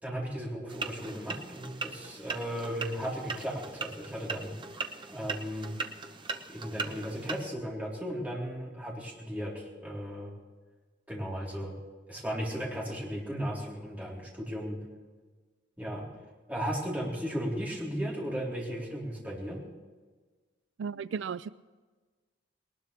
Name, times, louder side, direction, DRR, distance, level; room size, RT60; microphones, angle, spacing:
voice 1, 0.0-4.5 5.1-5.7 6.5-10.3 11.1-11.7 12.1-14.8 15.8-16.1 16.5-19.6, equal, 10° right, -5 dB, 3.9 m, -35 dB
sound 1, 0.7-7.5, right 4 dB, 25° right, 0.9 m, -39 dB
voice 2, 20.8-21.5, right 6 dB, 80° right, 16 dB, 0.4 m, -35 dB
20.5 x 19.5 x 3.4 m, 1.4 s
head